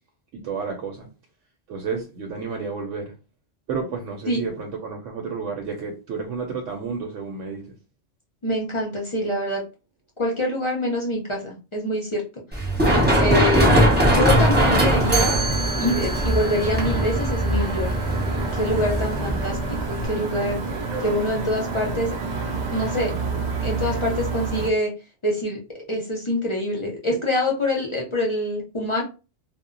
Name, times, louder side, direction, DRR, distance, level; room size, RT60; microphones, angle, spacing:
voice 1, 0.3-1.1 1.7-3.1 3.7-7.8 20.7-21.1, right 5 dB, 85° right, 0.9 m, -31 dB
voice 2, 8.4-9.6 10.2-12.2 12.5-12.7 13.0-13.7 14.0-15.3 15.8-18.0 18.5-19.6 19.9-20.6 21.0-22.1 22.7-23.1 23.6-24.9 25.2-25.6 25.9-29.0, left 1 dB, 40° left, 0.4 m, -25 dB
Run, 12.5-20.0, right 1 dB, 10° right, 0.8 m, -21 dB
sound 1, 14.3-24.7, right 3 dB, 65° right, 0.4 m, -28 dB
Chime, 15.1-21.0, right 4 dB, 35° right, 0.8 m, -34 dB
2.1 x 2.0 x 3.7 m
omnidirectional pair, 1.2 m